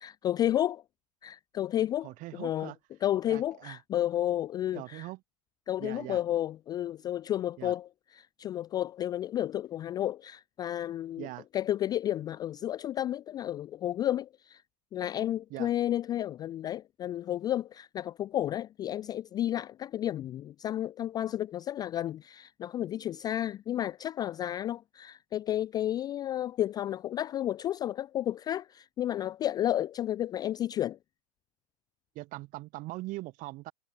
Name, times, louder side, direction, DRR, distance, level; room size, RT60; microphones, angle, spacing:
voice 1, 0.0-0.8 1.2-2.7 3.0-5.1 5.7-11.3 11.5-14.6 14.9-31.0, left 12 dB, 20° left, 0.3 m, -32 dB
voice 2, 2.0-2.8 3.2-3.8 4.7-5.2 5.8-6.2 7.6-7.7 11.2-11.4 15.5-15.7 32.1-33.7, right 20 dB, 40° right, 4.9 m, -41 dB
hypercardioid pair, 100°, 20 cm